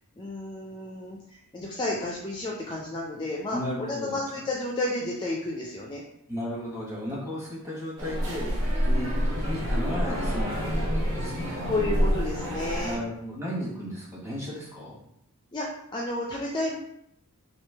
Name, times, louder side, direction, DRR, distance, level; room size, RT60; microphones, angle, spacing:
voice 1, 0.2-6.0 11.7-13.0 15.5-16.8, left 2 dB, 20° left, -2 dB, 0.4 m, -31 dB
voice 2, 3.5-4.2 6.3-11.6 12.8-15.0, equal, 10° right, -6 dB, 1.2 m, -35 dB
sound 1, 8.0-13.0, equal, 75° right, 1.0 m, -27 dB
3.1 x 2.7 x 3.3 m, 0.76 s
head